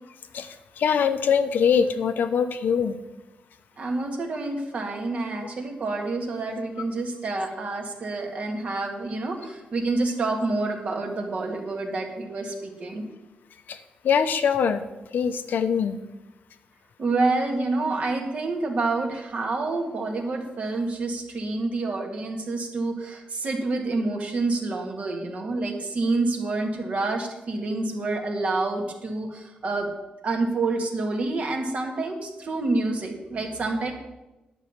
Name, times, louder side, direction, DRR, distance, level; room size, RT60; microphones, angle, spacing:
voice 1, 0.8-3.0 13.7-13.8 14.0-14.8 15.1-16.0, left 7 dB, 75° left, 9 dB, 0.8 m, -22 dB
voice 2, 3.8-13.0 17.0-29.9 30.2-33.9, right 3 dB, 45° right, 2 dB, 1.9 m, -28 dB
11.0 x 5.6 x 8.1 m, 1.0 s
wide cardioid pair, 165°, 3 cm